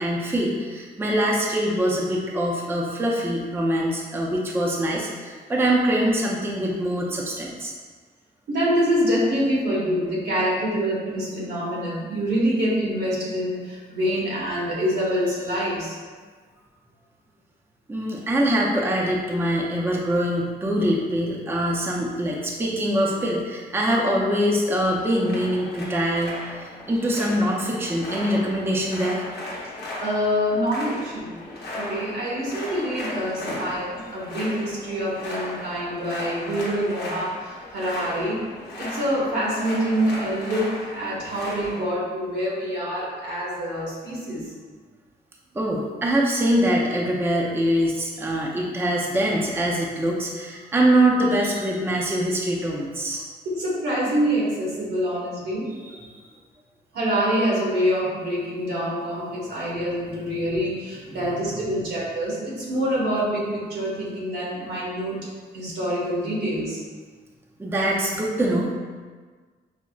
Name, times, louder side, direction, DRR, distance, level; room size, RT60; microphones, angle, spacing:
voice 1, 0.0-7.7 17.9-29.3 32.6-32.7 33.5-33.7 45.5-53.2 55.7-56.0 61.1-61.3 67.6-68.7, right 1 dB, 15° right, -3 dB, 0.5 m, -24 dB
voice 2, 8.5-15.9 30.0-31.3 31.7-38.4 38.8-44.5 53.4-55.7 56.9-65.2 65.5-66.8, equal, 80° right, -6 dB, 1.3 m, -26 dB
sound 1, 24.7-41.8, left 1 dB, 90° left, 0.8 m, -36 dB
5.7 x 2.0 x 2.3 m, 1.5 s
cardioid pair, 105°, 17 cm